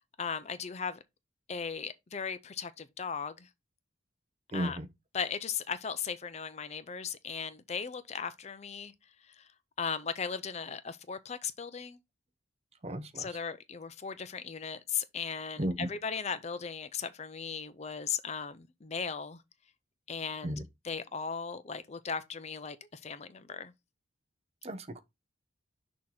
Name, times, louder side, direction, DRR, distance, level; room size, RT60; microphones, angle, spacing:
voice 1, 0.2-1.0 1.5-3.5 4.5-4.8 5.1-8.9 9.3-9.5 9.8-12.0 13.1-19.4 20.1-20.5 20.8-23.7, left 6 dB, 35° left, 0.5 m, -37 dB
voice 2, 4.5-4.9 12.8-13.3 15.6-15.9 20.4-20.6 24.6-25.0, right 1 dB, 30° right, 0.6 m, -34 dB
6.5 x 2.9 x 5.5 m
head